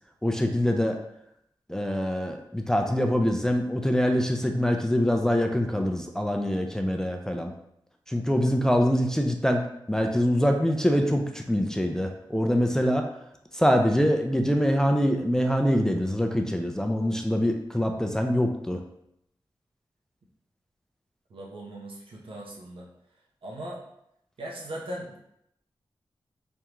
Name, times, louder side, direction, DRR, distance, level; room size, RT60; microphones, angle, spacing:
voice 1, 0.2-1.0 1.7-7.5 8.1-13.1 13.5-18.8, equal, 5° left, 3 dB, 0.4 m, -24 dB
voice 2, 21.3-22.9 23.4-23.8 24.4-25.2, right 1 dB, 85° right, -2 dB, 0.9 m, -38 dB
3.5 x 3.3 x 3.0 m, 0.76 s
wide cardioid pair, 105°, 9 cm